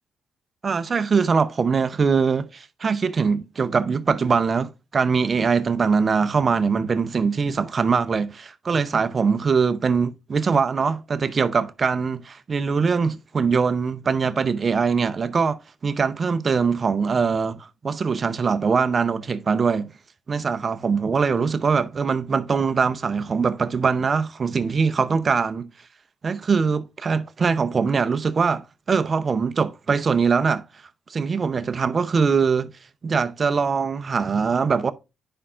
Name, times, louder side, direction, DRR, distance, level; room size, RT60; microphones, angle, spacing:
voice 1, 0.6-19.9 20.3-25.7 26.2-30.6 31.1-32.7 33.0-34.9, right 5 dB, 40° right, 0.7 m, -22 dB
10.0 x 5.5 x 2.5 m
cardioid pair, 90°, 0 cm